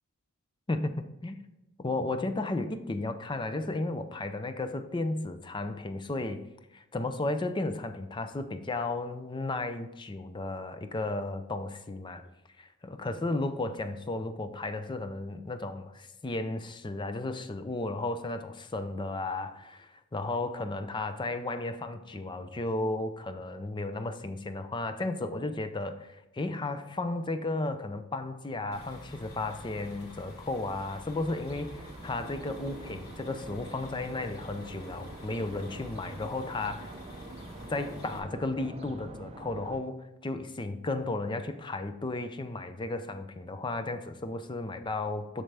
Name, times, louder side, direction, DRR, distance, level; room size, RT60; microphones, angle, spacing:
voice 1, 0.7-1.4 1.8-6.5 6.7-12.2 12.6-37.0 37.7-45.4, left 2 dB, 20° left, 0.5 m, -34 dB
sound 1, 28.7-38.2, left 1 dB, 45° left, 1.4 m, -48 dB
sound 2, 31.1-39.8, right 2 dB, 25° right, 0.5 m, -46 dB
7.4 x 6.6 x 3.4 m
head